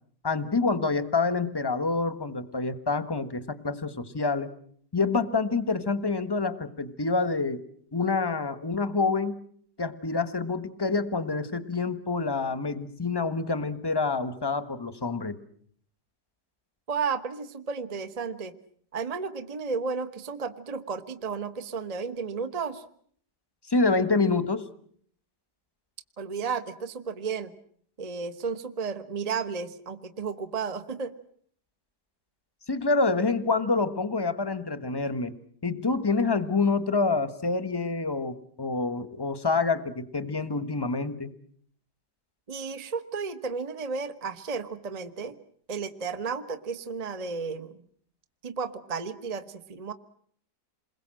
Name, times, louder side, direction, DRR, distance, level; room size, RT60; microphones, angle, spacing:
voice 1, 0.2-4.5 4.9-7.6 7.9-9.4 9.8-15.4 23.7-24.7 32.7-35.3 35.6-41.3, left 3 dB, 15° left, 12 dB, 1.2 m, -27 dB
voice 2, 16.9-18.5 18.9-22.8 26.2-27.5 28.0-31.1 42.5-45.4 45.7-47.8 48.4-49.9, right 5 dB, 25° right, 10 dB, 1.2 m, -33 dB
28.5 x 21.5 x 7.7 m, 0.62 s
omnidirectional pair, 1.9 m